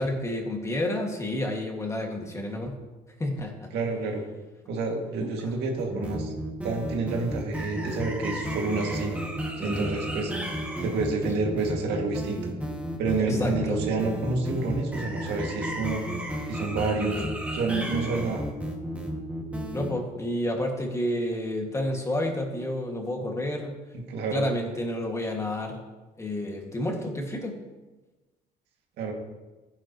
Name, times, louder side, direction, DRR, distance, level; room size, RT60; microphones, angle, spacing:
voice 1, 0.0-2.8 3.2-3.7 5.4-5.5 13.2-13.8 19.7-23.7 24.3-25.8 26.2-27.6, left 1 dB, 15° left, 1 dB, 2.0 m, -30 dB
voice 2, 3.7-4.2 4.7-6.3 6.6-9.2 9.6-10.3 10.8-12.5 13.0-16.0 16.5-17.3 17.5-18.4 24.1-24.4 29.0-29.1, right 3 dB, 80° right, 1 dB, 2.2 m, -28 dB
sound 1, 5.8-19.9, equal, 10° right, 2.0 m, -33 dB
14.5 x 10.0 x 3.0 m, 1.1 s
cardioid pair, 110°, 17 cm